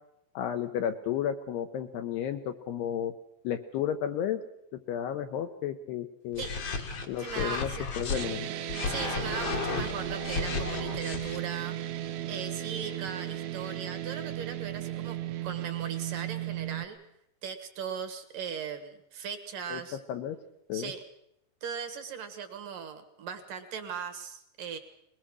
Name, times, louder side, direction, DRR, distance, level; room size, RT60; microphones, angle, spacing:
voice 1, 0.4-3.1 3.4-4.4 4.9-6.4 7.1-7.7 8.0-8.5 19.7-20.4 20.7-20.9, left 9 dB, 75° left, 7 dB, 2.6 m, -32 dB
sound 1, 6.3-8.2 8.7-11.4, left 5 dB, 55° left, 1.8 m, -34 dB
voice 2, 7.2-7.8 8.9-11.8 12.3-17.0 17.4-20.0 20.7-21.0 21.6-24.8, right 7 dB, 60° right, 8 dB, 2.5 m, -39 dB
sound 2, 8.1-16.9, right 12 dB, 80° right, 3.5 m, -35 dB
21.0 x 21.0 x 6.2 m, 0.77 s
omnidirectional pair, 5.5 m